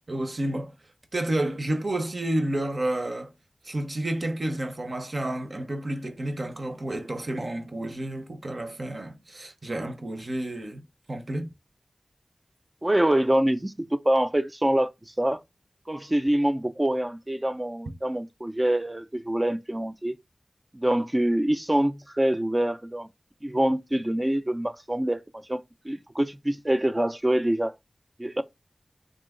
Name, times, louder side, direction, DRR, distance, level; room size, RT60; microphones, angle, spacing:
voice 1, 0.1-0.7 1.1-3.3 3.6-11.5, right 1 dB, 55° right, 0.8 m, -30 dB
voice 2, 12.8-14.9 15.2-15.4 15.9-20.2 20.7-23.1 23.4-27.7 28.2-28.4, right 1 dB, 25° right, 0.4 m, -25 dB
3.7 x 2.8 x 3.7 m
wide cardioid pair, 55°, 0 cm